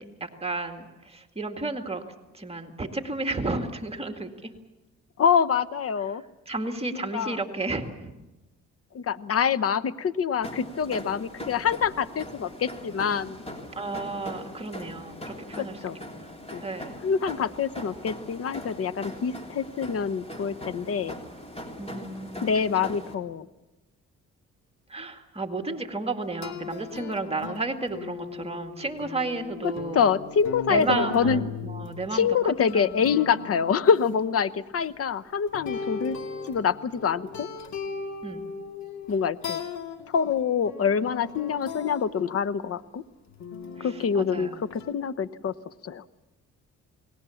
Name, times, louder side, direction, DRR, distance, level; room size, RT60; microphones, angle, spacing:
voice 1, 0.0-2.0 2.3-4.5 6.5-8.1 13.8-15.8 16.1-16.4 16.6-17.0 21.8-22.9 24.9-30.1 30.7-33.0 38.2-38.4 43.8-44.5, right 3 dB, 20° right, 5 dB, 2.1 m, -32 dB
voice 2, 5.2-6.2 6.9-7.4 8.9-13.4 15.6-16.0 16.5-16.6 17.0-21.2 22.4-23.5 29.6-31.5 32.1-36.2 36.5-37.5 39.1-39.6 40.1-43.0 43.8-45.5 45.8-46.0, left 6 dB, 50° left, 15 dB, 1.0 m, -26 dB
sound 1, 10.4-23.1, left 1 dB, 20° left, 3.3 m, -41 dB
sound 2, 26.4-34.9 35.5-42.3 43.3-44.9, left 6 dB, 65° left, 2.4 m, -38 dB
29.0 x 20.0 x 7.1 m, 1.1 s
cardioid pair, 90°, 30 cm